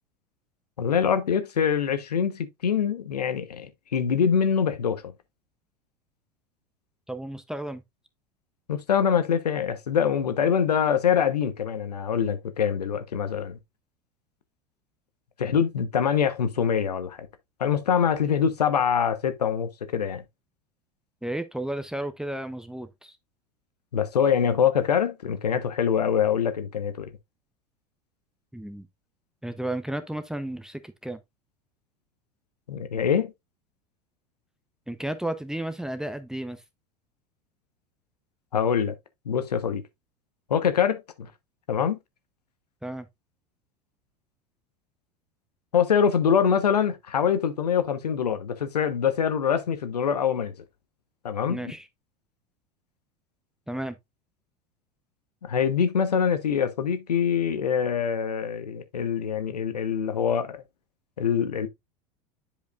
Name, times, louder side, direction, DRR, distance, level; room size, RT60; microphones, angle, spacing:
voice 1, 0.8-5.1 8.7-13.6 15.4-17.2 17.6-20.2 23.9-27.1 32.7-33.3 38.5-38.9 39.3-39.8 40.5-41.3 41.7-42.0 45.7-50.5 51.2-51.6 55.5-60.6 61.2-61.7, left 7 dB, 75° left, 1.0 m, -24 dB
voice 2, 7.1-7.8 21.2-23.1 28.5-28.9 29.4-31.2 34.9-36.6 42.8-43.1 51.5-51.9 53.7-54.0, right 1 dB, 5° right, 0.7 m, -33 dB
10.5 x 5.1 x 2.4 m
figure-of-eight pair, 80°, 21 cm